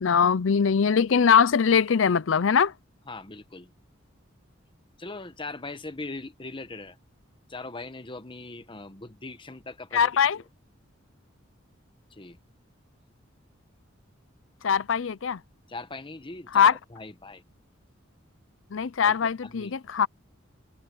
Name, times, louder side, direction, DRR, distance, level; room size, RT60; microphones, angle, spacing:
voice 1, 0.0-2.7 9.9-10.4 14.6-15.4 16.5-16.8 18.7-20.1, left 6 dB, 75° left, 0.5 m, -21 dB
voice 2, 3.1-3.7 5.0-7.0 7.5-10.1 12.1-12.4 15.7-17.4 19.0-19.1 19.4-19.7, left 3 dB, 25° left, 1.2 m, -40 dB
head